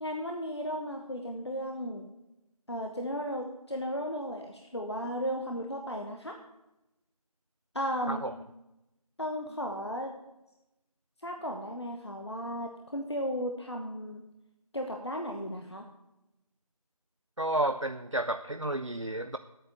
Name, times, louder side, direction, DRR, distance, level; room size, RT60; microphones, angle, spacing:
voice 1, 0.0-2.1 2.7-6.3 7.7-8.3 9.2-10.1 11.2-14.2 14.7-15.8, equal, 45° left, 2 dB, 1.1 m, -35 dB
voice 2, 17.4-19.4, right 1 dB, 55° right, 9 dB, 0.5 m, -31 dB
10.5 x 8.7 x 6.9 m, 0.92 s
figure-of-eight pair, 175°, 19 cm